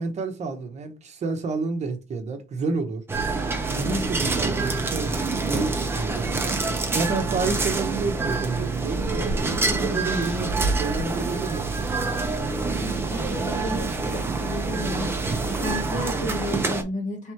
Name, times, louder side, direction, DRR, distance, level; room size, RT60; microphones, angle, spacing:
voice 1, 0.0-3.0 3.7-6.3 6.9-9.3 9.8-12.1, right 4 dB, 35° right, 0.9 m, -30 dB
sound 1, 3.1-16.8, right 3 dB, 10° right, 0.5 m, -27 dB
sound 2, 3.2-16.6, right 6 dB, 60° right, 0.4 m, -35 dB
voice 2, 3.8-4.6 9.5-9.9 12.8-15.1 15.6-17.3, left 1 dB, 40° left, 1.6 m, -33 dB
3.6 x 3.0 x 4.4 m
cardioid pair, 170°, 19 cm